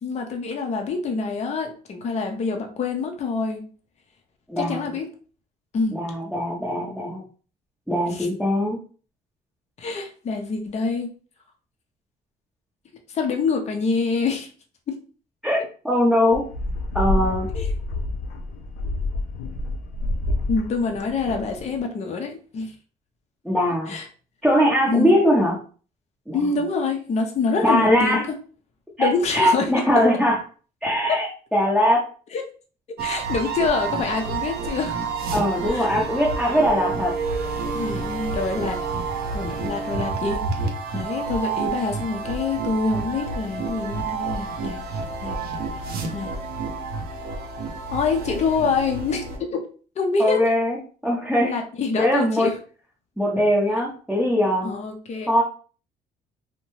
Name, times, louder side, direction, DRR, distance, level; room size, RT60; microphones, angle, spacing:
voice 1, 0.0-3.6 4.6-5.1 5.7-6.0 8.1-8.3 9.8-11.1 13.1-14.5 14.9-15.0 17.5-17.7 20.5-22.7 23.9-24.1 24.9-25.1 26.3-28.3 29.0-29.7 31.1-31.2 32.3-32.4 33.0-35.1 35.7-35.9 37.7-38.8 39.3-44.8 45.2-45.4 46.1-46.3 47.9-49.6 50.0-50.5 51.4-52.6 54.6-55.3, left 4 dB, 40° left, 4 dB, 0.6 m, -26 dB
voice 2, 4.5-4.8 5.9-7.2 7.9-8.8 15.4-15.6 15.8-16.4 16.9-17.5 23.4-23.9 24.4-25.6 26.3-26.4 27.6-28.2 29.0-30.4 30.8-32.0 35.3-37.1 50.2-50.8 51.0-51.5 52.0-52.5 53.2-54.7 55.3-55.4, equal, ahead, -5 dB, 0.7 m, -21 dB
sound 1, 16.3-21.8, left 2 dB, 85° left, 0.5 m, -28 dB
sound 2, 33.0-49.4, right 4 dB, 65° right, 0.7 m, -29 dB
2.6 x 2.1 x 3.0 m, 0.39 s
cardioid pair, 110°, 17 cm